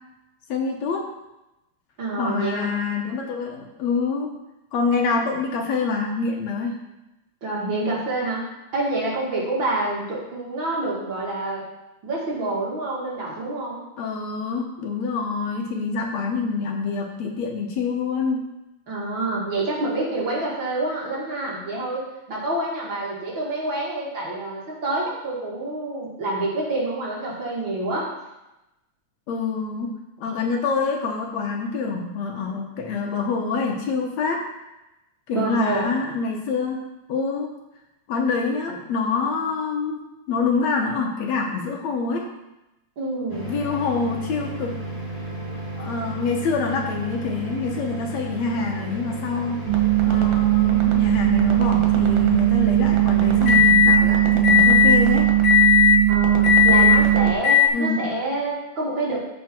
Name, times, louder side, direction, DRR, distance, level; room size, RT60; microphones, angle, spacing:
voice 1, 0.5-1.1 2.2-4.3 4.7-6.7 14.0-18.4 29.3-29.9 30.2-34.4 35.3-36.8 37.1-37.5 38.1-42.3 43.5-44.8 45.8-49.6 50.0-55.3 57.7-58.0, left 4 dB, 70° left, 1 dB, 2.3 m, -26 dB
voice 2, 2.0-2.8 7.4-8.4 8.7-11.6 12.0-13.8 18.9-22.0 22.3-28.1 35.3-35.9 43.0-43.5 56.1-59.2, right 2 dB, 45° right, -5 dB, 2.6 m, -27 dB
sound 1, 43.3-54.0 54.4-55.0 55.4-56.0 56.4-57.0 57.4-57.7, left 8 dB, 15° left, 0.9 m, -22 dB
sound 2, 49.7-57.3, right 15 dB, 75° right, 2.5 m, -19 dB
14.0 x 5.1 x 4.5 m, 0.95 s
omnidirectional pair, 3.3 m